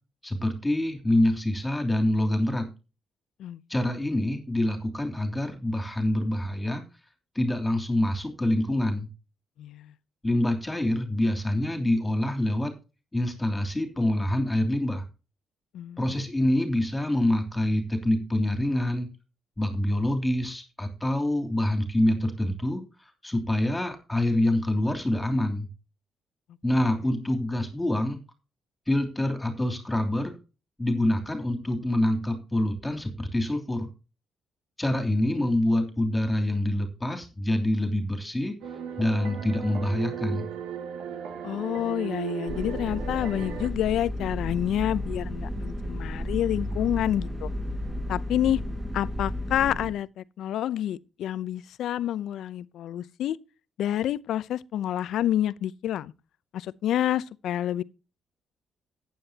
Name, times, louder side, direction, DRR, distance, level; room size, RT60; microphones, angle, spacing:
voice 1, 0.2-2.7 3.7-6.8 7.3-9.1 10.2-12.7 13.1-15.0 16.0-19.1 19.6-25.7 26.6-28.2 28.9-30.4 30.8-33.9 34.8-38.5 39.0-40.5, left 1 dB, 10° left, 3.0 m, -26 dB
voice 2, 9.6-9.9 15.7-16.2 41.4-47.5 48.1-48.6 48.9-53.4 53.8-56.1 56.5-57.8, left 11 dB, 75° left, 0.6 m, -28 dB
sound 1, 38.6-43.7, right 8 dB, 85° right, 2.1 m, -36 dB
sound 2, 42.5-49.9, equal, 30° right, 4.9 m, -33 dB
14.5 x 9.5 x 2.8 m
cardioid pair, 90°, 0 cm